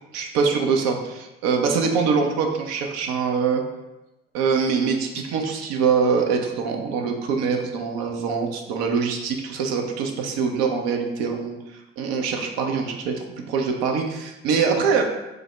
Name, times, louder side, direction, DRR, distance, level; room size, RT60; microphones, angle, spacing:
voice 1, 0.1-3.6 4.3-11.6 12.0-15.0, right 5 dB, 55° right, 3 dB, 0.6 m, -23 dB
3.3 x 2.0 x 3.4 m, 0.99 s
figure-of-eight pair, 50°, 31 cm